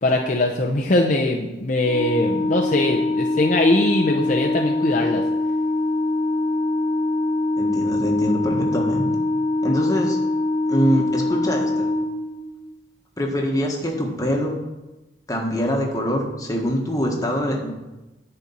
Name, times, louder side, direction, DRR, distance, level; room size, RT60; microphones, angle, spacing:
voice 1, 0.0-5.2, left 2 dB, 45° left, 0 dB, 0.8 m, -21 dB
Organ, 1.8-12.7, left 2 dB, 45° right, 2.0 m, -23 dB
voice 2, 7.6-9.1 9.6-10.2 10.7-11.9 13.2-14.6 15.3-17.7, equal, 20° left, 0 dB, 1.6 m, -24 dB
10.0 x 4.5 x 7.2 m, 1.0 s
head